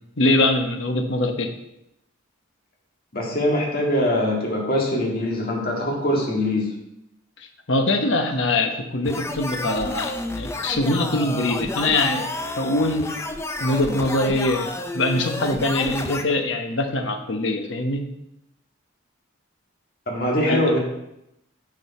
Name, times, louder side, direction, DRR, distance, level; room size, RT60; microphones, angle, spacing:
voice 1, 0.2-1.5 7.4-12.3 12.6-13.1 13.6-18.0 20.5-20.6, left 2 dB, 65° left, 5 dB, 1.0 m, -23 dB
voice 2, 3.1-6.7 20.1-20.8, left 1 dB, 45° left, -2 dB, 1.9 m, -22 dB
sound 1, 9.0-16.2, left 2 dB, 15° left, 0.4 m, -30 dB
9.7 x 5.4 x 4.2 m, 0.85 s
head